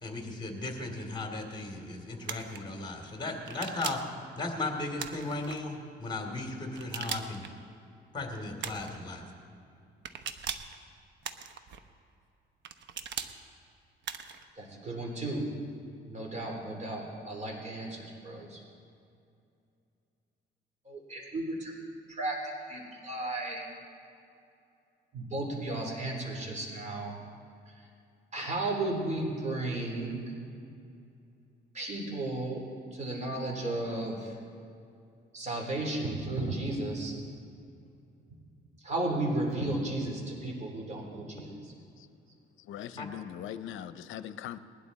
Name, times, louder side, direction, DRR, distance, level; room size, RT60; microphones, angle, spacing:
voice 1, 0.0-4.0 4.3-7.4 8.1-9.2 43.0-43.1, left 2 dB, 20° left, 2 dB, 2.8 m, -36 dB
sound 1, 2.2-2.6 3.5-4.1 5.0-5.6 6.7-7.5 8.6-9.0 10.0-10.7 11.2-11.8 12.6-13.3 14.0-14.4, right 7 dB, 65° right, 0.9 m, -39 dB
voice 2, 14.6-15.4 16.0-18.6 20.8-21.7 22.1-22.4 22.7-23.7 25.1-27.2 27.7-27.9 28.3-30.2 31.7-32.6 32.9-34.4 35.3-37.1 38.8-41.7, right 2 dB, 35° right, -1 dB, 3.5 m, -34 dB
voice 3, 42.7-44.6, left 10 dB, 80° left, 13 dB, 0.6 m, -40 dB
20.0 x 11.0 x 4.1 m, 2.5 s
cardioid pair, 90°, 20 cm